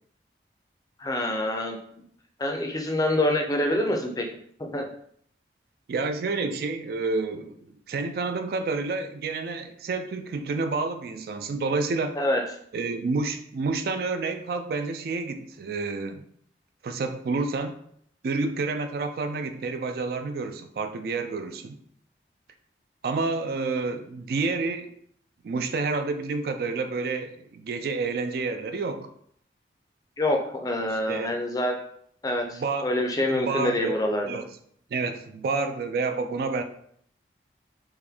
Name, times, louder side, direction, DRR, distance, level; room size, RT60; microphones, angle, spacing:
voice 1, 1.0-1.8 2.4-4.2 4.6-4.9 12.2-12.4 30.2-31.8 32.2-34.4, left 1 dB, 20° left, 2 dB, 0.4 m, -26 dB
voice 2, 5.9-12.2 12.7-16.2 16.8-17.7 18.2-21.8 23.0-24.9 25.4-29.1 30.9-31.4 32.5-32.9 33.3-34.0 34.2-34.5 34.9-36.6, right 3 dB, 55° right, 7 dB, 0.3 m, -29 dB
3.5 x 2.5 x 3.4 m, 0.64 s
head